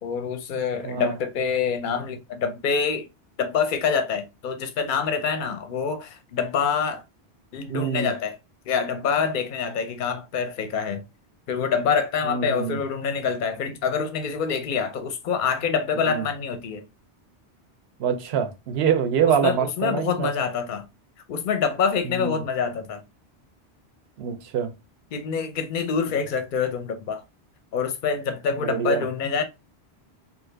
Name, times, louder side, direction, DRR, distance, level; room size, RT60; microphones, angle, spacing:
voice 1, 0.0-3.1 3.4-7.0 7.5-8.4 8.7-11.0 11.5-16.8 19.2-20.8 21.3-23.0 25.1-27.2 27.7-29.4, left 6 dB, 55° left, 0.7 m, -26 dB
voice 2, 7.7-8.1 12.2-12.8 16.0-16.2 18.0-20.3 22.0-22.4 24.2-24.7 28.6-29.0, right 7 dB, 75° right, 0.8 m, -25 dB
2.8 x 2.4 x 3.2 m
omnidirectional pair, 1.1 m